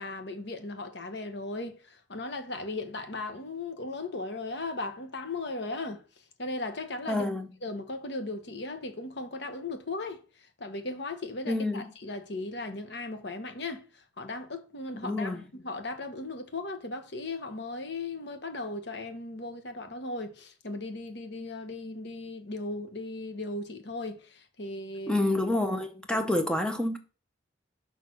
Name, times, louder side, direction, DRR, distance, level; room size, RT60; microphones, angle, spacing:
voice 1, 0.0-6.0 6.4-7.2 7.6-10.2 10.6-25.2 26.1-26.3, left 2 dB, 60° left, 1.0 m, -37 dB
voice 2, 7.1-7.5 11.5-11.9 15.0-15.5 25.1-27.0, left 1 dB, 5° left, 0.6 m, -28 dB
6.2 x 3.5 x 6.0 m
head